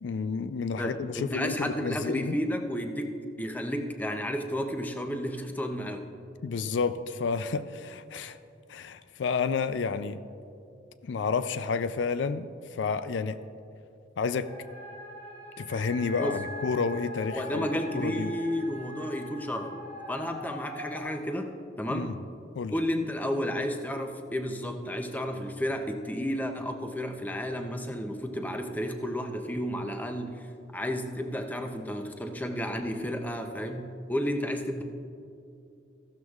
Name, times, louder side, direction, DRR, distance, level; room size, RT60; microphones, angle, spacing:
voice 1, 0.0-2.4 6.4-8.4 8.7-10.2 11.0-13.4 14.2-14.5 15.6-17.7 17.9-18.3 21.9-22.2 22.5-22.7, left 5 dB, 70° left, 12 dB, 0.4 m, -30 dB
voice 2, 0.8-6.1 16.2-16.4 17.3-21.5 21.8-22.1 22.7-30.5 30.7-34.8, equal, 10° left, 5 dB, 0.6 m, -32 dB
sound 1, 14.5-21.0, left 1 dB, 35° left, 1.8 m, -42 dB
15.0 x 12.5 x 2.4 m, 2.6 s
head